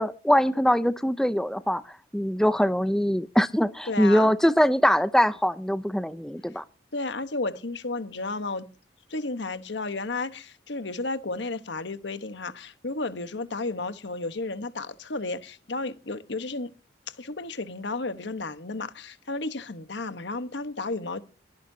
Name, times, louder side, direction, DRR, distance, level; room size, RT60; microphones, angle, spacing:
voice 1, 0.0-1.8 2.1-6.6, equal, 5° left, 0.6 m, -22 dB
voice 2, 3.9-4.3 6.9-8.7 9.1-16.7 17.1-21.2, left 3 dB, 70° left, 1.2 m, -33 dB
22.5 x 10.5 x 2.8 m
head